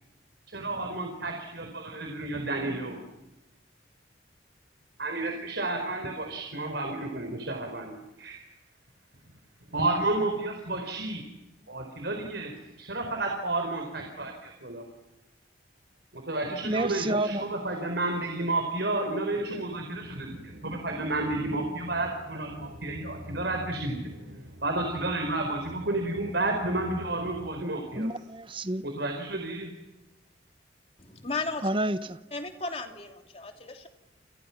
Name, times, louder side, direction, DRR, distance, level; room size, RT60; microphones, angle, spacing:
voice 1, 0.5-3.0 5.0-8.4 9.7-11.2 11.7-12.5 12.8-14.9 16.1-24.1 24.6-28.1 28.8-29.7, right 2 dB, 65° right, 4.5 m, -31 dB
voice 2, 16.6-17.4 28.0-28.8 31.6-32.2, right 1 dB, 25° right, 1.1 m, -29 dB
sound 1, 20.0-27.6, equal, 85° right, 6.5 m, -47 dB
voice 3, 31.0-31.7 32.3-33.9, left 3 dB, 30° left, 3.0 m, -35 dB
30.0 x 29.0 x 6.0 m
head